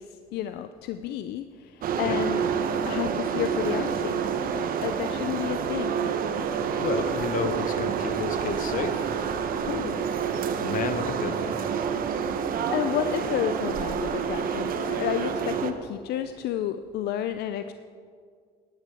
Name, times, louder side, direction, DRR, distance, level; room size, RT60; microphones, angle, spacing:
voice 1, 0.0-2.4 2.9-6.1 9.6-10.4 12.7-17.7, left 11 dB, 75° left, 10 dB, 0.5 m, -31 dB
sound 1, 1.8-15.7, right 7 dB, 60° right, 0.9 m, -28 dB
voice 2, 6.8-9.1 10.6-11.6, left 5 dB, 55° left, 10 dB, 1.0 m, -31 dB
11.0 x 10.5 x 4.9 m, 2.1 s
cardioid pair, 110°, 17 cm